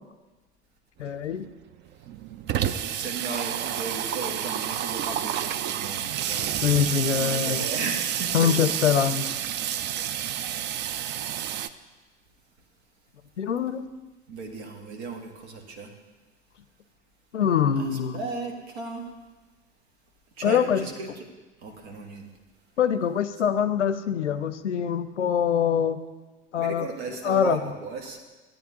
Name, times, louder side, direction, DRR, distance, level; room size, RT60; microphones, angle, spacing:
voice 1, 1.0-1.5 6.6-7.7 8.3-9.3 13.4-13.9 17.3-18.2 20.4-20.8 22.8-26.0 26.5-27.6, left 8 dB, 85° left, 12 dB, 0.5 m, -24 dB
Water tap faucet / Sink (filling or washing), 1.1-1.2 1.4-1.5 1.8-11.7, right 10 dB, 35° right, 0.4 m, -29 dB
voice 2, 2.5-6.6 7.1-8.9 14.3-15.9 17.8-19.1 20.4-21.2 21.6-22.3 26.6-28.2, right 3 dB, 65° right, 4 dB, 1.4 m, -36 dB
12.0 x 8.9 x 2.8 m, 1.2 s
figure-of-eight pair, 65°, 34 cm